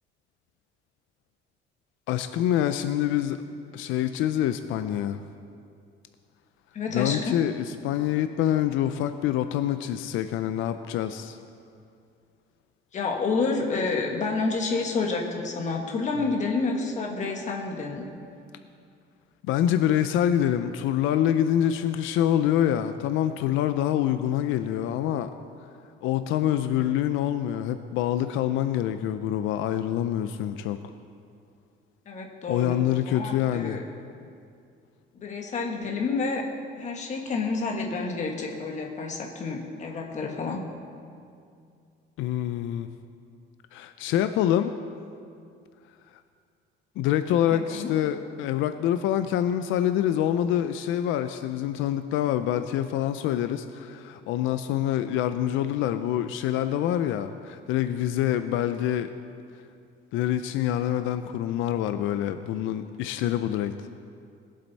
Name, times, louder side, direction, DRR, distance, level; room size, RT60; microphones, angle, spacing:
voice 1, 2.1-3.4 3.7-5.2 6.9-11.4 19.5-25.3 26.0-30.8 32.5-33.8 42.2-42.9 43.7-44.7 47.0-59.1 60.1-63.8, left 11 dB, 90° left, 10 dB, 0.5 m, -26 dB
voice 2, 6.7-7.4 12.9-18.1 32.0-33.8 35.1-36.5 36.7-40.6 47.5-47.9, left 4 dB, 35° left, 1 dB, 1.5 m, -29 dB
20.5 x 7.7 x 4.1 m, 2.4 s
cardioid pair, 150°, 20 cm